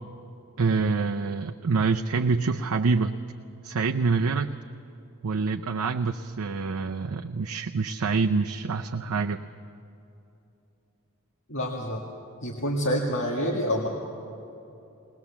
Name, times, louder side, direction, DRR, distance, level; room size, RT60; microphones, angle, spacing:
voice 1, 0.6-3.2 3.6-4.5 5.2-9.4, right 4 dB, 80° right, 4 dB, 0.6 m, -26 dB
voice 2, 11.5-12.0 12.4-13.9, equal, 60° left, -2 dB, 1.9 m, -27 dB
20.0 x 20.0 x 7.1 m, 2.9 s
head